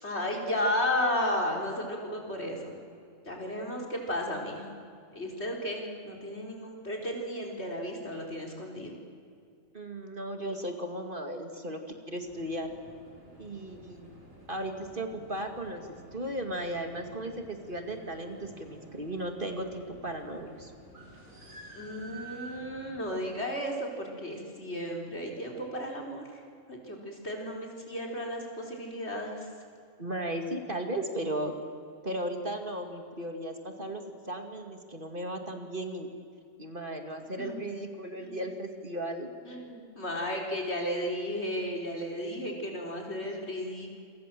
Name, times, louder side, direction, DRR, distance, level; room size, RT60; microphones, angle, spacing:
voice 1, 0.0-2.8 3.3-4.8 5.1-9.0 21.7-26.2 26.7-29.5 37.4-37.6 38.2-38.4 39.4-44.0, left 1 dB, 55° left, 1 dB, 4.4 m, -34 dB
voice 2, 9.7-11.8 12.1-12.7 13.4-14.1 14.5-20.7 30.0-31.6 32.0-36.1 36.6-39.3, right 1 dB, 40° right, 5 dB, 2.4 m, -36 dB
sound 1, 12.2-23.0, right 1 dB, 85° right, 6.3 m, -51 dB
28.0 x 25.5 x 7.7 m, 2.4 s
omnidirectional pair, 1.4 m